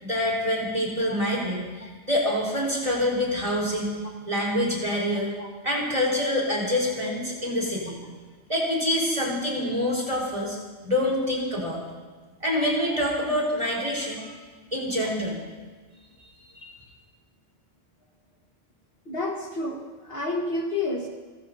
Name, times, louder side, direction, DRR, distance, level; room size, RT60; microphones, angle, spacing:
voice 1, 0.0-5.3 5.6-8.0 8.5-10.6 10.8-11.8 12.4-14.4 14.7-15.4, left 1 dB, 25° right, -3 dB, 4.6 m, -26 dB
voice 2, 19.1-21.1, left 2 dB, 50° left, 0 dB, 1.8 m, -30 dB
29.5 x 15.0 x 2.8 m, 1.4 s
omnidirectional pair, 1.3 m